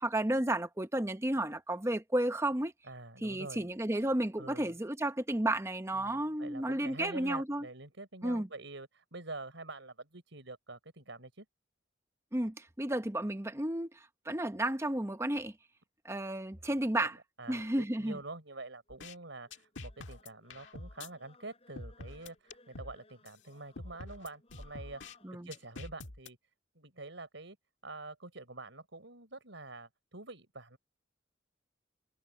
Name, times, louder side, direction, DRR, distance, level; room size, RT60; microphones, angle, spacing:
voice 1, 0.0-2.7 3.2-7.7 8.2-8.5 12.3-13.9 14.3-15.5 16.0-17.2 17.5-18.2 25.2-25.5, right 1 dB, 15° right, 0.9 m, -32 dB
voice 2, 2.8-3.7 4.4-4.7 5.9-11.4 17.0-17.1 17.4-25.1 25.4-26.4 26.7-27.6 27.8-30.8, right 2 dB, 75° right, 4.4 m, -46 dB
sound 1, 18.9-19.2 19.5-21.1 21.8-23.0 23.3-23.4 23.8-25.2 25.5-26.3, left 2 dB, 75° left, 1.8 m, -46 dB
sound 2, 19.4-25.7, left 3 dB, 30° left, 6.3 m, -63 dB
head